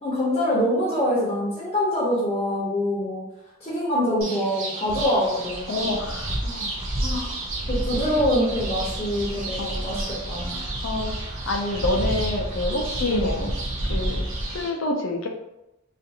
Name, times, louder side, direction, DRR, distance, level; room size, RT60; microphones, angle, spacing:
voice 1, 0.0-3.2 3.6-5.9 6.4-6.7 7.0-7.4 7.7-10.7 13.0-13.4, equal, 30° left, -7 dB, 0.7 m, -25 dB
sound 1, 4.2-14.7, right 3 dB, 85° right, 0.7 m, -35 dB
Wind, 4.9-14.7, right 1 dB, 25° right, 0.3 m, -31 dB
voice 2, 5.7-6.4 6.6-6.7 9.6-9.8 10.8-13.5 13.9-14.2 14.5-15.3, left 2 dB, 75° left, 3 dB, 0.5 m, -27 dB
2.5 x 2.4 x 2.7 m, 0.90 s
head